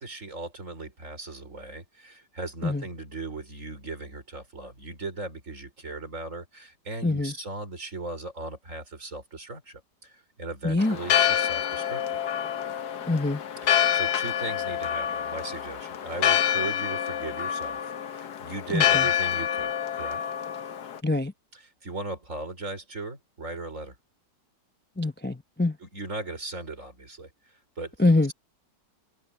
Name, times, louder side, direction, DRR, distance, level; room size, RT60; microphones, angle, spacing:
voice 1, 0.0-12.0 13.6-20.2 21.8-24.0 25.8-27.9, right 2 dB, 45° right, 5.4 m, -38 dB
voice 2, 7.0-7.3 10.6-11.0 13.1-13.4 18.7-19.0 21.0-21.3 25.0-25.8 28.0-28.3, left 2 dB, 10° left, 0.4 m, -24 dB
Church bell, 10.8-21.0, left 9 dB, 70° left, 1.6 m, -27 dB
omnidirectional pair, 1.9 m